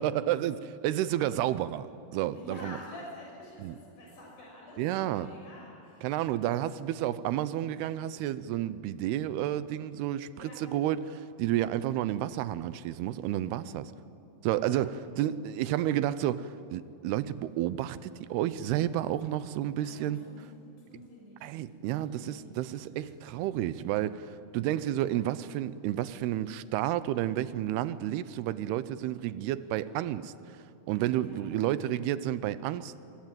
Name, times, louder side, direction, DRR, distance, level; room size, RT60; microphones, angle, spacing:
voice 1, 0.0-1.9 2.1-2.8 3.6-3.8 4.8-5.3 6.0-13.9 14.4-20.2 21.4-30.3 30.9-32.9, right 12 dB, 85° right, 15 dB, 2.8 m, -31 dB
voice 2, 2.3-6.5 10.4-10.6 14.7-14.8 19.7-20.5 20.9-21.5 22.0-22.5 22.9-23.1 28.6-28.7 31.2-31.4, left 1 dB, 55° left, -2 dB, 7.9 m, -48 dB
25.0 x 23.5 x 9.1 m, 2.6 s
omnidirectional pair, 4.5 m